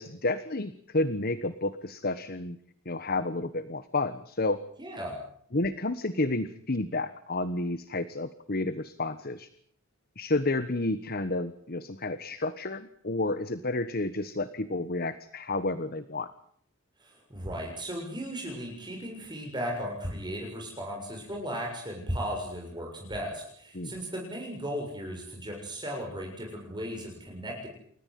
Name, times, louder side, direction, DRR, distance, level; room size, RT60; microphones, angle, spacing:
voice 1, 0.0-2.6 2.8-4.6 5.5-9.5 10.2-16.3 23.7-23.9, left 2 dB, 45° left, 12 dB, 1.3 m, -30 dB
voice 2, 4.8-5.2 17.0-27.7, equal, 20° right, 0 dB, 6.9 m, -36 dB
29.5 x 14.5 x 9.3 m, 0.62 s
head